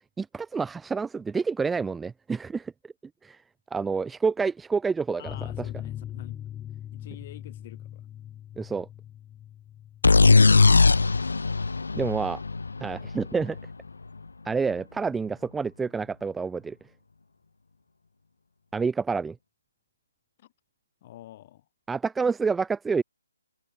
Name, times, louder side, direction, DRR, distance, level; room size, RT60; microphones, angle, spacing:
voice 1, 0.2-2.7 3.2-3.4 3.7-5.7 8.6-8.9 11.9-12.4 12.8-13.6 14.5-16.8 18.7-19.4 21.9-23.0, right 5 dB, 5° right, 0.4 m, -28 dB
voice 2, 5.2-6.4 6.9-8.0 20.4-20.5 21.0-21.6, left 13 dB, 35° left, 6.5 m, -47 dB
sound 1, 5.3-12.4 12.6-12.7 13.1-13.2, left 11 dB, 15° left, 0.9 m, -41 dB
sound 2, 10.0-13.7, left 3 dB, 75° left, 0.5 m, -20 dB
figure-of-eight pair, 145°, 0 cm